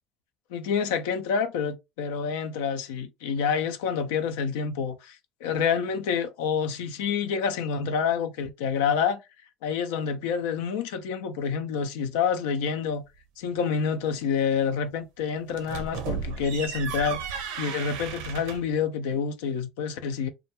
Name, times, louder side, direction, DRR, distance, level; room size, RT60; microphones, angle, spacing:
voice 1, 0.5-9.2 9.6-13.0 13.4-20.3, left 6 dB, 75° left, 0.4 m, -28 dB
sound 1, 15.5-18.8, right 6 dB, 70° right, 0.5 m, -34 dB
2.3 x 2.1 x 2.8 m
hypercardioid pair, 70°, 0 cm